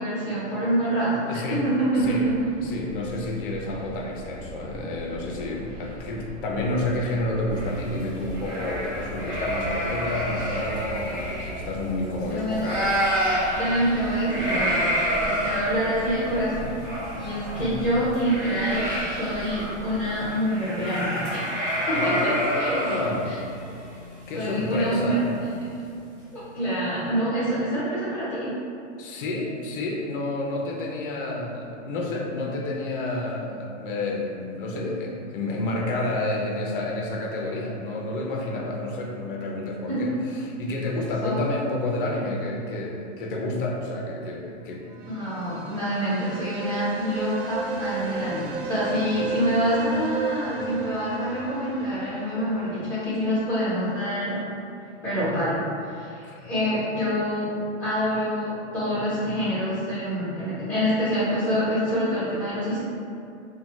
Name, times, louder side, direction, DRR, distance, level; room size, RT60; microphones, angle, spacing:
voice 1, 0.0-2.5 12.3-12.7 13.5-14.9 15.2-16.7 17.2-18.9 19.1-21.5 21.9-22.3 22.6-22.7 23.3-23.4 24.3-25.3 25.8-25.9 26.3-28.5 39.9-40.2 41.2-41.4 45.1-54.5 55.0-57.5 57.8-62.8, equal, 5° left, -14 dB, 1.0 m, -26 dB
voice 2, 1.3-1.6 2.0-2.3 2.6-13.5 17.5-17.7 21.9-23.5 24.3-25.2 29.0-44.8 56.2-56.4, left 2 dB, 50° left, -1 dB, 0.5 m, -29 dB
sound 1, 2.0-20.3, equal, 45° right, 0.6 m, -41 dB
sound 2, 7.5-12.2 12.5-25.4, equal, 10° right, 1.0 m, -29 dB
sound 3, 44.9-53.7, right 4 dB, 85° right, 0.6 m, -34 dB
2.6 x 2.2 x 3.0 m, 2.5 s
supercardioid pair, 165°, 36 cm